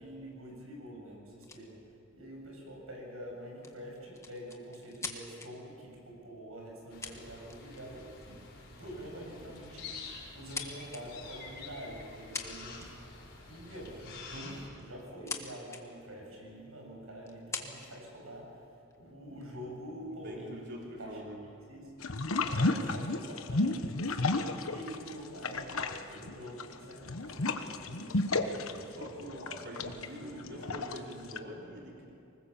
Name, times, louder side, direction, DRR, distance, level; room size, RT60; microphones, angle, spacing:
voice 1, 0.0-22.1 22.4-28.6 29.1-29.4 29.8-31.4, equal, 80° right, -1 dB, 7.7 m, -46 dB
sound 1, 1.4-1.6 3.6-5.5 6.6-6.7 7.0-7.8 8.2-8.4 9.4-9.6 10.0-11.0 12.1-12.2 12.3-13.1 14.6-15.4 15.7-15.8 16.5-16.6 17.3-18.0 18.7-19.4, left 4 dB, 15° left, 1.5 m, -42 dB
sound 2, 6.9-14.7, left 4 dB, 55° left, 5.7 m, -48 dB
voice 2, 20.2-21.4 28.3-32.1, equal, 55° right, -2 dB, 3.7 m, -45 dB
sound 3, 22.0-25.1 25.4-31.4, left 2 dB, 85° left, 1.2 m, -32 dB
24.5 x 20.5 x 7.3 m, 2.5 s
head